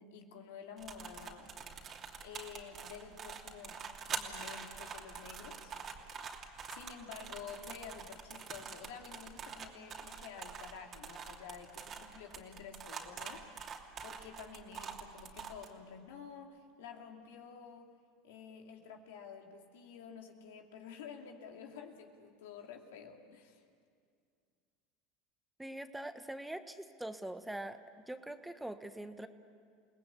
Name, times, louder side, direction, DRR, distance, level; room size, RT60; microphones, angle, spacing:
voice 1, 0.0-1.6 2.2-5.7 6.7-13.5 14.0-17.9 18.2-23.6, left 7 dB, 75° left, 3 dB, 2.6 m, -50 dB
sound 1, 0.8-15.7, right 6 dB, 40° right, 2.8 m, -45 dB
voice 2, 25.6-29.3, right 1 dB, 5° right, 9 dB, 1.2 m, -43 dB
29.5 x 19.0 x 8.5 m, 2.2 s
hypercardioid pair, 85°, 0 cm